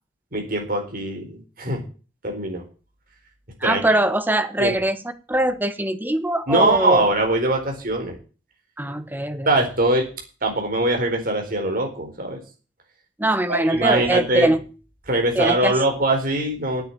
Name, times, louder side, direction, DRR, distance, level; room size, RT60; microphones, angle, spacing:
voice 1, 0.3-1.8 2.2-2.6 3.6-3.9 4.6-4.7 6.5-8.2 9.5-10.1 10.4-12.4 13.5-14.5 15.1-16.8, right 2 dB, 50° right, 2 dB, 4.3 m, -22 dB
voice 2, 3.6-5.0 5.3-7.1 8.8-9.5 13.2-14.6 15.3-15.8, right 1 dB, 10° right, 10 dB, 1.1 m, -22 dB
9.2 x 8.1 x 9.0 m, 0.36 s
head